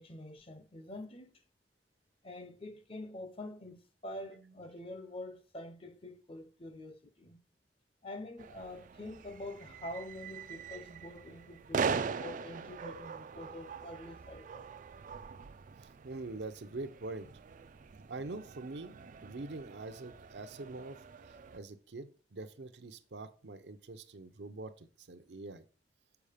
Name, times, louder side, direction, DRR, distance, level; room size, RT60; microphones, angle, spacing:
voice 1, 0.0-1.4 2.2-7.4 8.0-14.7, left 1 dB, 30° left, 0.7 m, -46 dB
sound 1, 8.4-21.6, right 5 dB, 45° right, 0.4 m, -42 dB
voice 2, 16.0-17.3 18.1-21.0 21.5-25.7, right 2 dB, 70° right, 0.7 m, -44 dB
7.0 x 4.9 x 5.0 m
head